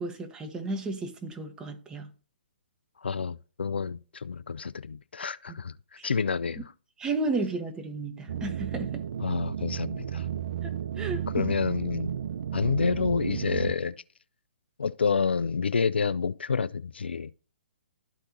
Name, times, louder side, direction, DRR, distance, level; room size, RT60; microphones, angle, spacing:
voice 1, 0.0-2.1 6.0-6.1 7.0-9.0 10.6-11.5, right 3 dB, 10° right, 0.9 m, -33 dB
voice 2, 3.0-5.7 6.0-6.7 9.2-10.3 11.3-12.2 12.5-14.0 14.8-17.3, left 5 dB, 70° left, 0.3 m, -28 dB
sound 1, 8.3-13.7, right 9 dB, 50° right, 0.3 m, -33 dB
13.0 x 4.4 x 2.6 m
figure-of-eight pair, 130°, 6 cm